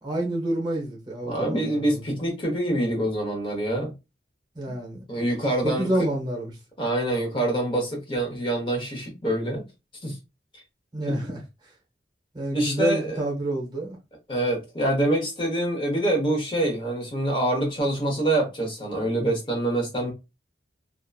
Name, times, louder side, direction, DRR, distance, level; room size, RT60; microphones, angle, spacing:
voice 1, 0.0-2.0 4.5-5.0 5.6-6.5 10.9-11.7 12.3-14.0, right 1 dB, 25° right, 0.8 m, -28 dB
voice 2, 1.2-3.9 5.1-5.9 6.8-9.7 10.0-10.2 11.1-11.2 12.5-13.2 14.3-20.1, right 1 dB, 30° left, 0.8 m, -25 dB
2.8 x 2.4 x 2.3 m
head